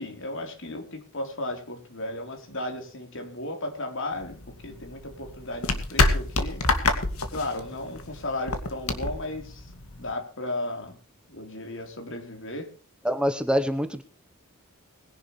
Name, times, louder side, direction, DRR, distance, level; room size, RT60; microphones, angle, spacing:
voice 1, 0.0-6.7 7.3-9.7 10.0-11.0 11.3-12.7, left 1 dB, 60° left, 5 dB, 3.8 m, -35 dB
sound 1, 4.2-10.1, left 3 dB, 75° left, 2.3 m, -27 dB
voice 2, 13.0-14.0, equal, 5° right, 8 dB, 1.0 m, -25 dB
21.5 x 11.0 x 3.2 m, 0.39 s
head